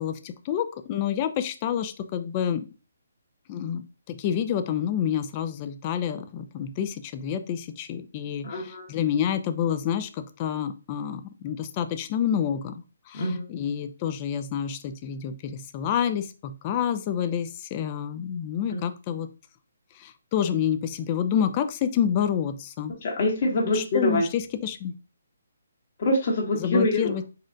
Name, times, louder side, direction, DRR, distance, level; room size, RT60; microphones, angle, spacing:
voice 1, 0.0-2.7 3.5-19.3 20.0-22.9 23.6-24.9 26.6-27.3, left 9 dB, 25° left, 9 dB, 0.4 m, -28 dB
voice 2, 8.4-8.9 13.1-13.4 18.7-18.8 23.0-24.2 26.0-27.0, left 1 dB, 45° left, -1 dB, 1.6 m, -24 dB
4.2 x 2.4 x 3.9 m, 0.33 s
hypercardioid pair, 160°, 0 cm